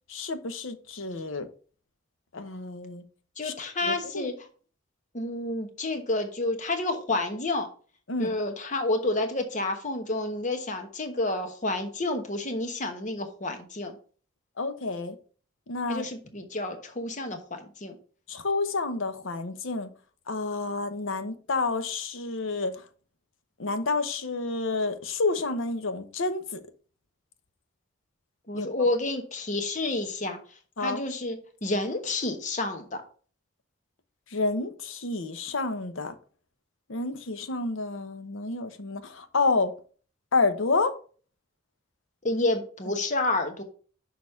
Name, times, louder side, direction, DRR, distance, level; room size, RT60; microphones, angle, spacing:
voice 1, 0.1-1.5 2.3-3.0 3.4-3.5 3.8-4.3 8.1-8.3 14.6-15.2 15.7-16.1 18.3-19.9 20.3-22.7 23.6-26.6 28.5-28.7 30.8-31.0 34.3-36.1 36.9-39.7 40.3-40.9 42.9-43.0, left 3 dB, 80° left, 0.9 m, -29 dB
voice 2, 3.4-4.3 5.1-7.7 8.2-14.0 15.9-18.0 28.5-30.4 30.8-33.0 42.2-43.6, left 2 dB, 35° left, 1.1 m, -29 dB
6.3 x 4.0 x 5.7 m
head